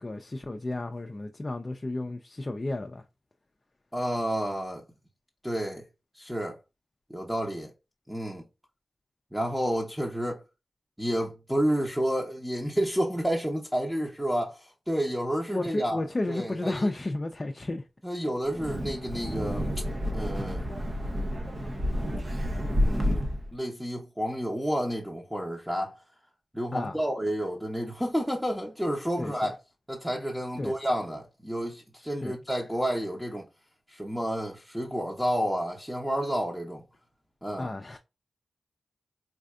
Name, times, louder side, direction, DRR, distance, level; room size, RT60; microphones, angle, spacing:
voice 1, 0.0-3.0 15.5-17.8 26.7-27.0 29.2-29.5 30.6-30.8 32.2-32.4 37.6-38.0, left 2 dB, 35° left, 0.5 m, -32 dB
voice 2, 3.9-4.8 5.4-5.8 6.2-6.6 7.1-7.7 8.1-8.4 9.3-10.4 11.0-14.6 14.9-16.9 18.0-19.7 20.1-20.6 22.7-23.2 23.5-26.0 26.5-29.6 29.9-33.5 33.9-36.8 37.4-37.7, equal, 5° right, 0.9 m, -30 dB
Wind, 18.5-23.5, equal, 45° right, 0.8 m, -29 dB
4.2 x 2.6 x 2.3 m
cardioid pair, 60°, 0 cm